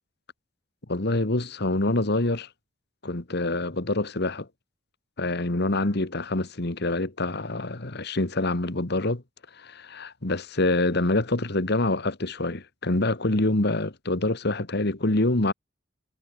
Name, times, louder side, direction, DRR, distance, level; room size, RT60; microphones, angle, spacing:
voice 1, 0.9-2.5 3.0-4.5 5.2-9.2 9.5-15.5, left 2 dB, 55° left, 1.9 m, -26 dB
head